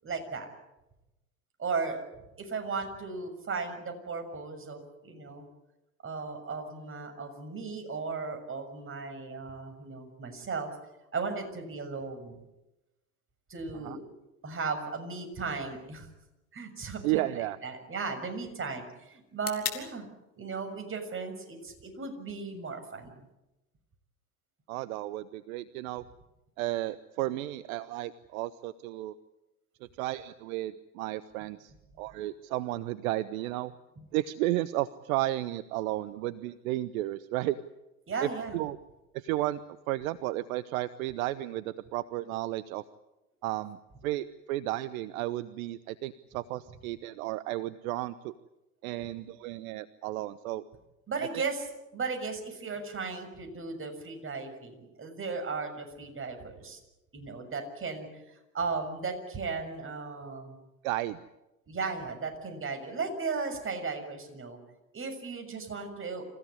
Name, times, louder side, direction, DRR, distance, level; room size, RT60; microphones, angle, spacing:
voice 1, 0.0-0.5 1.6-2.0 2.4-5.5 6.0-10.7 11.1-12.4 13.5-14.0 14.4-16.1 16.5-20.1 20.4-23.2 34.0-34.1 38.1-38.6 51.1-51.7 51.9-56.8 57.1-60.5 61.7-64.6 64.9-66.2, right 4 dB, 25° right, 5 dB, 6.7 m, -36 dB
sound 1, 15.3-23.3, left 10 dB, 80° left, 3.3 m, -46 dB
voice 2, 17.0-17.6 24.7-26.0 26.6-29.1 30.0-33.7 34.1-37.6 38.2-38.8 39.1-39.6 39.9-42.8 43.4-43.8 44.0-48.3 48.8-50.6 51.3-51.4 60.8-61.2, right 16 dB, 65° right, 16 dB, 1.0 m, -33 dB
27.0 x 16.0 x 9.8 m, 0.98 s
hypercardioid pair, 85°, 45 cm